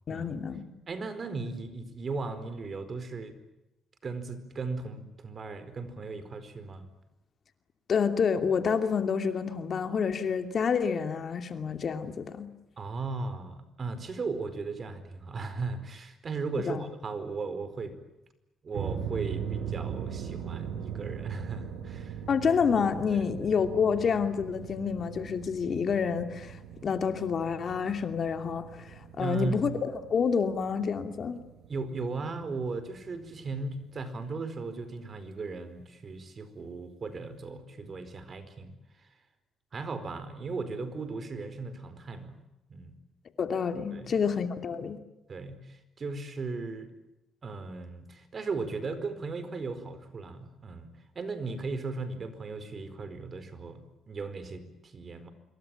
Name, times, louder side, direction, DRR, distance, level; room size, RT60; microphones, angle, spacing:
voice 1, 0.1-0.6 7.9-12.5 16.6-16.8 22.3-26.6 26.8-31.4 43.4-45.0, left 6 dB, 50° left, 8 dB, 2.7 m, -28 dB
voice 2, 0.9-3.4 4.0-6.9 12.8-18.0 18.6-22.2 23.1-23.2 29.0-29.7 31.7-38.7 39.7-42.3 42.7-42.9 43.9-44.1 45.3-46.9 47.4-55.3, right 4 dB, 40° right, 12 dB, 4.6 m, -37 dB
sound 1, 18.7-33.9, right 8 dB, 90° right, 5.1 m, -40 dB
26.0 x 23.0 x 9.2 m, 0.95 s
cardioid pair, 90°, 0 cm